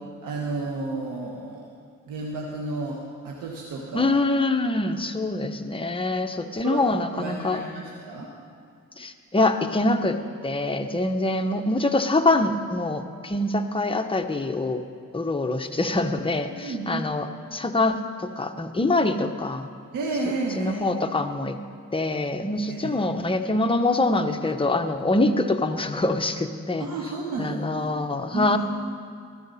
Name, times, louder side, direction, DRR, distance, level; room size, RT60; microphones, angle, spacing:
voice 1, 0.2-1.7 2.0-4.1 6.6-8.3 16.5-17.3 19.9-20.8 22.7-22.9 26.8-28.0 28.3-28.6, right 3 dB, 85° right, -2 dB, 1.5 m, -32 dB
voice 2, 3.9-7.6 9.0-14.8 15.1-19.7 20.6-21.6 21.9-26.8 27.4-28.6, left 2 dB, 15° left, 5 dB, 0.9 m, -24 dB
15.0 x 13.5 x 4.2 m, 2.3 s
cardioid pair, 80°, 32 cm